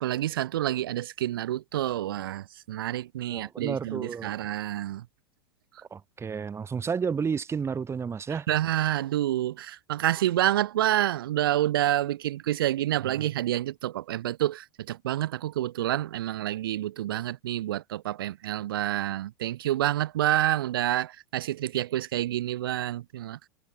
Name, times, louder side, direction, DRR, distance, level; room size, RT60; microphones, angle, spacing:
voice 1, 0.0-5.0 8.3-23.4, right 13 dB, 65° right, 1.5 m, -28 dB
voice 2, 3.3-4.3 5.9-8.5, right 6 dB, 20° right, 6.4 m, -31 dB
figure-of-eight pair, 90°, 12 cm